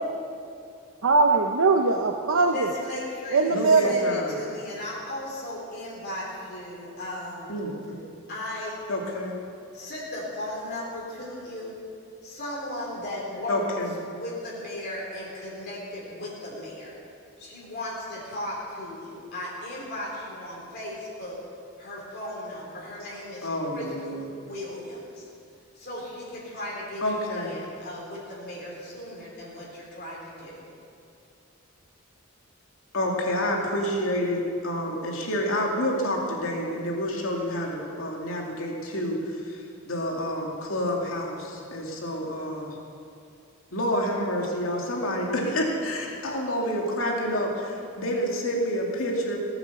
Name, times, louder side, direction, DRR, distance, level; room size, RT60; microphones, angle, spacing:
voice 1, 1.0-2.7 3.3-4.0, right 3 dB, 80° right, 3 dB, 0.8 m, -21 dB
voice 2, 2.5-7.5 8.3-8.8 9.7-11.7 12.2-13.7 14.1-17.0 17.4-21.4 21.8-25.2 25.8-30.7 45.4-45.7, left 1 dB, 55° left, -5 dB, 3.8 m, -36 dB
voice 3, 3.5-4.4 7.5-8.0 8.9-9.3 13.5-13.9 23.4-24.3 27.0-27.5 32.9-42.8 43.7-49.4, equal, 85° left, -1 dB, 2.6 m, -28 dB
18.5 x 8.9 x 7.0 m, 2.5 s
head